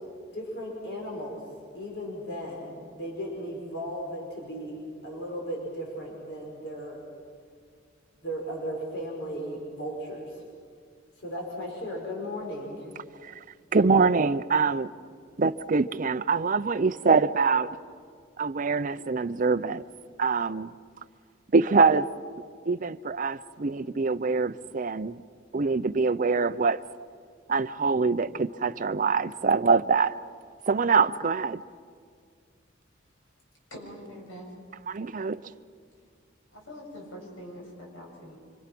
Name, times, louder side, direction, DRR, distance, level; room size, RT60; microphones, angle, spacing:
voice 1, 0.3-1.4 1.7-7.0 8.2-10.4 11.2-12.9, equal, 60° left, 5.2 m, -36 dB
voice 2, 13.7-14.9 15.4-17.7 18.4-19.8 20.2-20.7 21.5-22.1 22.7-25.2 25.5-26.8 27.5-30.2 30.7-31.6 34.9-35.4, right 4 dB, 40° right, 0.5 m, -24 dB
voice 3, 33.7-34.5 36.5-38.4, equal, 75° left, 7.4 m, -44 dB
28.0 x 25.0 x 6.0 m
head